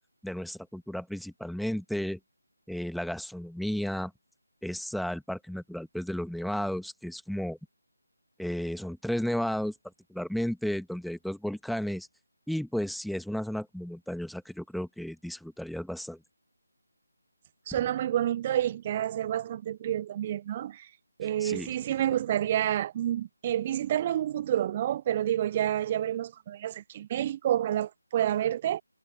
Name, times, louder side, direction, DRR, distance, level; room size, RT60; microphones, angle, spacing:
voice 1, 0.2-2.2 2.7-4.1 4.6-7.6 8.4-9.7 10.1-12.1 12.5-16.2 21.4-21.7, equal, ahead, 1.8 m, -33 dB
voice 2, 17.7-20.9 21.2-28.8, right 11 dB, 25° right, 0.5 m, -29 dB
figure-of-eight pair, 155°, 0 cm